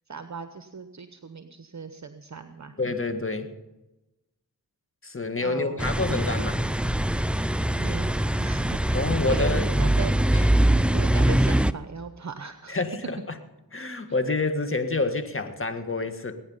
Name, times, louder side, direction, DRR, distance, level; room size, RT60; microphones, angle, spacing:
voice 1, 0.1-2.7 5.4-5.8 7.8-10.1 10.9-12.8, right 5 dB, 45° right, 8 dB, 1.0 m, -38 dB
voice 2, 2.8-3.5 5.0-6.6 8.9-9.6 10.3-10.4 12.7-13.4 13.7-16.3, left 3 dB, 30° left, 8 dB, 1.8 m, -28 dB
sound 1, 5.8-11.7, right 1 dB, 5° right, 0.5 m, -23 dB
20.0 x 9.7 x 5.6 m, 1.0 s
cardioid pair, 45°, 40 cm